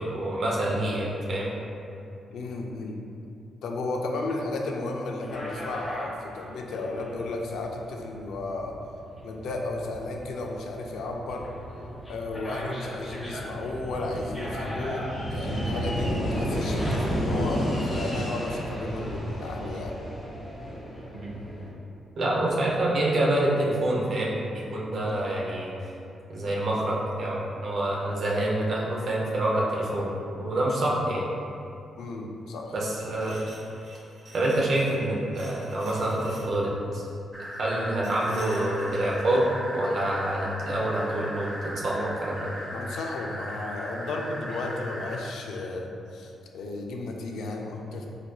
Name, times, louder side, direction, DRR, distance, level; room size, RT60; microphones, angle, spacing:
voice 1, 0.0-1.5 21.1-21.4 22.2-25.7 26.3-30.1 30.4-31.3 32.7-33.4 34.3-37.1 37.4-39.4 39.7-42.5, right 1 dB, 55° right, -4 dB, 0.6 m, -27 dB
voice 2, 2.3-3.0 3.6-8.8 9.2-11.5 12.1-20.0 32.0-32.7 42.7-48.1, left 2 dB, 80° left, 1 dB, 0.3 m, -33 dB
sound 1, 5.2-21.7, equal, 15° left, 1.1 m, -33 dB
sound 2, 32.9-35.0 35.3-36.5 38.0-39.4, right 2 dB, 80° right, 1.3 m, -48 dB
sound 3, 37.3-45.2, equal, 15° right, 0.6 m, -38 dB
4.1 x 2.5 x 2.2 m, 2.6 s
cardioid pair, 135°, 0 cm